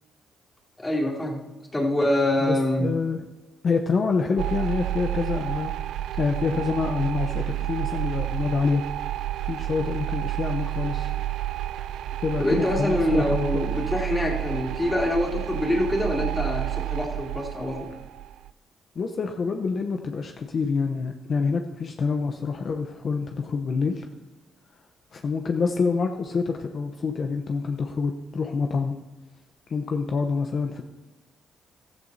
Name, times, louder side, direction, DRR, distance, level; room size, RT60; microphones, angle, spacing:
voice 1, 0.8-2.9 12.4-17.9, left 1 dB, 15° left, -2 dB, 3.0 m, -25 dB
voice 2, 2.5-3.3 3.6-5.7 6.2-8.8 9.4-11.1 12.2-13.5 19.0-24.1 25.1-28.9 29.7-30.8, left 4 dB, 50° left, 4 dB, 0.8 m, -27 dB
sound 1, 4.4-18.5, right 13 dB, 80° right, 0.3 m, -30 dB
14.5 x 13.0 x 2.8 m, 1.1 s
cardioid pair, 90°, 0 cm